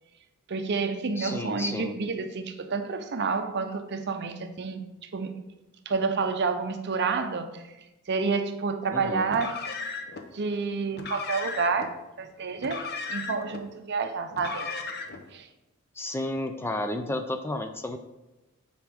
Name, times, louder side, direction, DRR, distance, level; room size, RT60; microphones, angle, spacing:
voice 1, 0.5-4.9 5.1-5.3 5.9-7.6 8.1-9.6 10.3-14.7 15.3-15.5, right 4 dB, 50° right, 8 dB, 0.6 m, -29 dB
voice 2, 1.2-2.0 8.9-9.3 16.0-18.0, left 1 dB, 10° left, 7 dB, 0.3 m, -32 dB
Car, 9.3-10.2 10.9-11.9 12.6-13.6 14.3-15.3, left 4 dB, 50° left, 0.7 m, -36 dB
9.1 x 4.3 x 3.5 m, 1.0 s
head